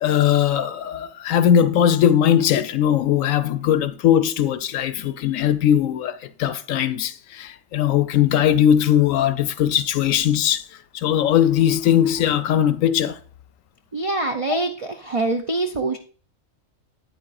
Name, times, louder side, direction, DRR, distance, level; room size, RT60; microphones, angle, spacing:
voice 1, 0.0-10.6 10.9-13.2, left 10 dB, 75° left, 1.0 m, -19 dB
voice 2, 13.9-16.0, right 2 dB, 65° right, 0.3 m, -24 dB
9.3 x 8.7 x 2.5 m
omnidirectional pair, 1.4 m